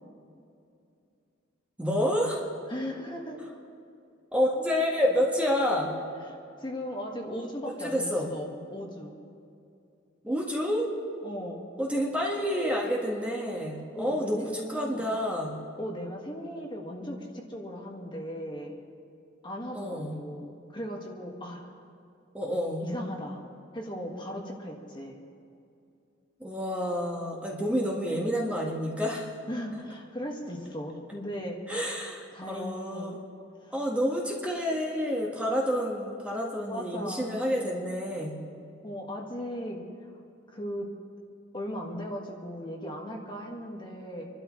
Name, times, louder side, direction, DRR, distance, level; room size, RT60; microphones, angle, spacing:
voice 1, 1.8-2.4 4.3-5.9 7.8-8.3 10.2-10.9 11.8-15.6 19.7-20.2 22.3-22.8 26.4-29.3 31.7-33.2 33.7-38.4, equal, 5° right, -3 dB, 1.6 m, -29 dB
voice 2, 2.7-3.4 5.9-6.0 6.6-9.2 11.2-11.7 13.9-15.0 15.8-18.8 19.4-21.7 22.8-23.4 23.7-25.2 29.5-31.6 32.3-33.2 33.6-33.7 36.7-37.3 38.8-39.8 40.5-40.9 41.5-44.3, equal, 25° left, -1 dB, 1.7 m, -37 dB
27.5 x 12.0 x 3.2 m, 2.5 s
head